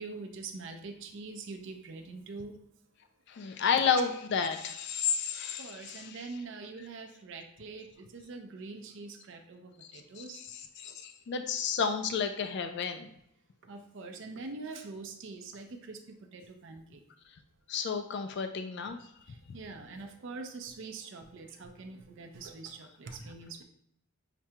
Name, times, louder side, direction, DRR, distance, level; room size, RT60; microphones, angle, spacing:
voice 1, 0.0-2.5 5.6-10.4 10.9-11.0 13.7-16.0 16.3-17.0 19.5-23.6, right 3 dB, 55° right, 4 dB, 0.5 m, -44 dB
voice 2, 3.3-6.2 9.8-13.1 17.7-19.0, left 6 dB, 50° left, 7 dB, 0.3 m, -32 dB
5.8 x 2.2 x 2.8 m, 0.73 s
head